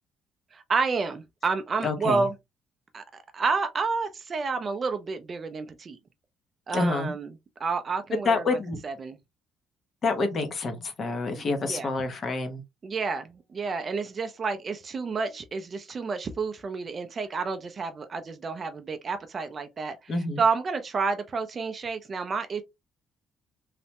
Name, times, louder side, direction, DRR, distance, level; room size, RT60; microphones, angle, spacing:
voice 1, 0.5-2.3 2.9-6.0 6.7-7.3 7.6-8.6 8.8-9.2 11.6-11.9 12.8-22.6, right 4 dB, 30° right, 0.3 m, -30 dB
voice 2, 1.8-2.3 6.7-7.1 8.2-8.8 10.0-12.6 20.1-20.4, left 3 dB, 35° left, 0.6 m, -27 dB
3.2 x 2.0 x 2.7 m
cardioid pair, 170°, 0 cm